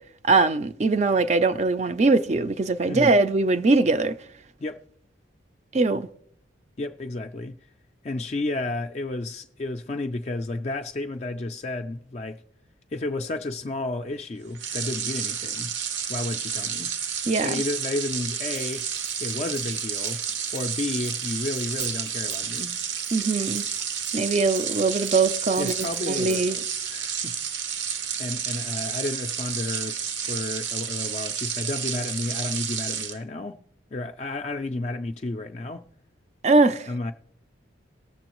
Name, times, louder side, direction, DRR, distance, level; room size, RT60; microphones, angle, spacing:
voice 1, 0.2-4.1 5.7-6.1 17.3-17.6 23.1-23.6 24.1-25.7 26.1-26.6 36.4-36.9, right 3 dB, 35° right, 0.4 m, -21 dB
voice 2, 6.8-7.6 8.0-12.4 12.9-15.7 16.1-16.9 17.4-18.9 19.2-20.2 20.5-22.8 25.6-27.3 27.6-27.8 28.2-33.6 33.9-35.8 36.9-37.1, left 2 dB, 35° left, 0.3 m, -32 dB
sound 1, 14.5-33.2, right 7 dB, 70° right, 0.8 m, -30 dB
Hi-hat, 18.5-26.4, right 4 dB, 85° right, 2.7 m, -48 dB
18.5 x 6.9 x 3.0 m
head